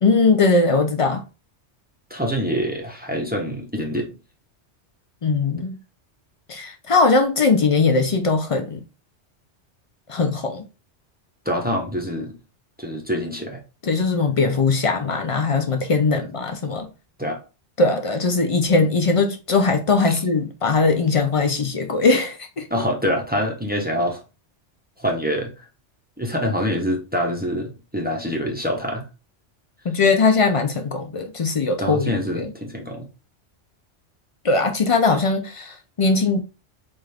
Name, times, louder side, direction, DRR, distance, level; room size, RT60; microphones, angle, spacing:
voice 1, 0.0-1.2 5.2-5.8 6.5-8.8 10.1-10.6 13.8-16.9 17.8-22.7 29.8-32.5 34.4-36.4, left 4 dB, 55° left, 0.3 m, -20 dB
voice 2, 2.1-4.1 11.5-12.4 12.8-13.6 17.2-17.4 20.0-20.2 22.7-24.2 25.0-25.7 26.2-29.1 31.8-33.1, equal, 10° right, 0.6 m, -25 dB
4.4 x 2.4 x 3.2 m
omnidirectional pair, 1.2 m